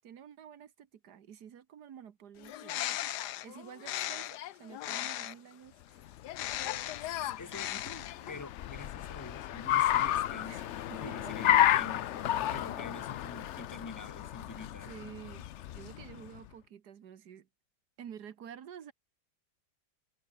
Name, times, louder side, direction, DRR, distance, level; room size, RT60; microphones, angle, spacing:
voice 1, 0.0-2.9 3.4-6.1 10.4-11.3 14.7-17.5 18.0-18.9, right 9 dB, 80° right, 1.8 m, -50 dB
Bird, 2.4-5.5 6.2-8.4, left 13 dB, 85° left, 1.3 m, -37 dB
Car, 6.1-16.4, left 12 dB, 65° left, 0.7 m, -32 dB
voice 2, 7.0-14.9, left 3 dB, 15° left, 1.0 m, -47 dB
omnidirectional pair, 1.7 m